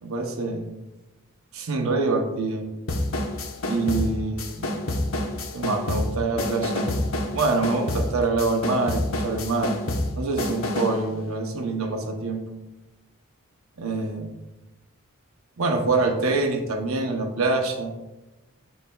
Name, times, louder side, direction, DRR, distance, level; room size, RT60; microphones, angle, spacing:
voice 1, 0.0-0.6 1.5-2.6 3.6-4.7 5.5-6.9 7.3-9.8 10.2-12.5 13.8-14.4 15.6-17.9, right 3 dB, 75° right, 3 dB, 0.7 m, -25 dB
sound 1, 2.9-11.0, left 1 dB, 70° left, 1.0 m, -28 dB
12.0 x 4.1 x 2.3 m, 1.0 s
head